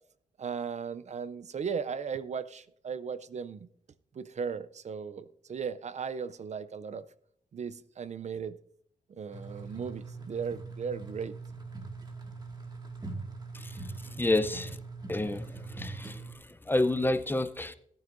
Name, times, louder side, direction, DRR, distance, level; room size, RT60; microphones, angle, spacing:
voice 1, 0.4-3.7 4.1-7.0 7.5-8.6 9.2-11.4, right 6 dB, 55° right, 0.5 m, -37 dB
sound 1, 9.3-16.3, right 3 dB, 30° right, 2.0 m, -42 dB
voice 2, 13.5-14.8 15.1-17.7, left 2 dB, 15° left, 0.6 m, -30 dB
17.5 x 9.3 x 2.6 m
cardioid pair, 90°, 14 cm